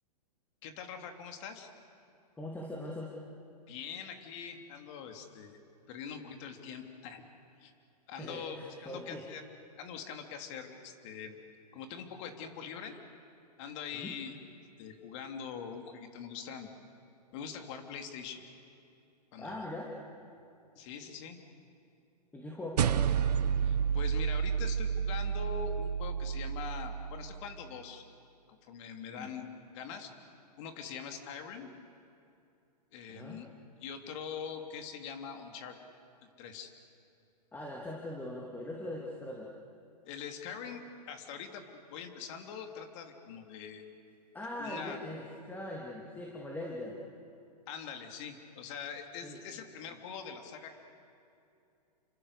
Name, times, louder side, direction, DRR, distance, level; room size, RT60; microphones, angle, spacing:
voice 1, 0.6-1.7 3.7-5.6 5.9-7.2 7.6-7.7 8.1-9.4 9.8-11.4 11.7-13.0 13.6-14.3 14.8-16.7 17.3-18.4 19.3-19.6 20.7-21.4 23.6-28.0 28.7-29.5 29.7-30.1 30.6-31.7 32.9-33.5 33.8-35.8 36.4-36.7 40.0-40.8 41.1-41.6 41.9-44.0 44.6-45.0 47.7-50.7, left 7 dB, 45° left, 5 dB, 3.2 m, -43 dB
voice 2, 2.4-3.1 8.2-9.2 13.9-14.1 19.4-19.9 22.3-23.1 29.1-29.3 33.1-33.4 37.5-39.5 44.3-47.0 49.2-49.4, left 1 dB, 10° left, -2 dB, 2.8 m, -41 dB
sound 1, 22.8-27.4, right 7 dB, 70° right, 1.1 m, -30 dB
29.5 x 25.5 x 6.8 m, 2.6 s
hypercardioid pair, 130°, 21 cm